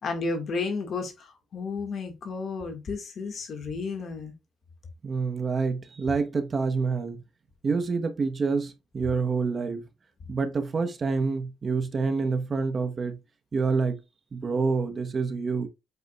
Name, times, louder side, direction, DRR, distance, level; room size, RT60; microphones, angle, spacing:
voice 1, 0.0-4.3, left 4 dB, 55° left, 1.8 m, -32 dB
voice 2, 5.0-7.2 7.6-9.8 10.3-13.2 13.5-14.0 14.3-15.7, right 4 dB, 40° right, 1.1 m, -27 dB
8.0 x 5.0 x 2.4 m
cardioid pair, 90°, 0 cm